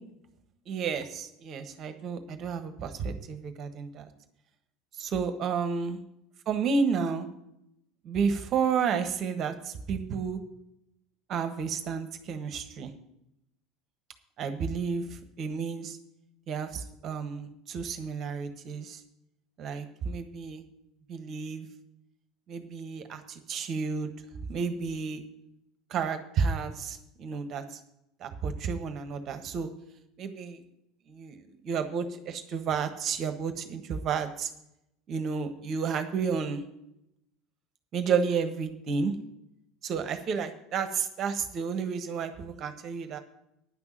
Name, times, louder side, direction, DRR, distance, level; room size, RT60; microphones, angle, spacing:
voice 1, 0.7-4.1 5.0-6.0 6.5-7.3 8.0-10.4 11.3-12.9 14.4-16.0 16.5-19.0 19.6-20.6 21.1-21.7 22.5-24.1 24.5-25.2 25.9-27.8 28.2-29.7 30.2-30.6 31.1-34.5 35.1-36.6 37.9-39.1 39.8-43.2, right 5 dB, 45° right, 8 dB, 1.4 m, -31 dB
10.0 x 6.1 x 8.8 m, 0.79 s
hypercardioid pair, 70°, 0 cm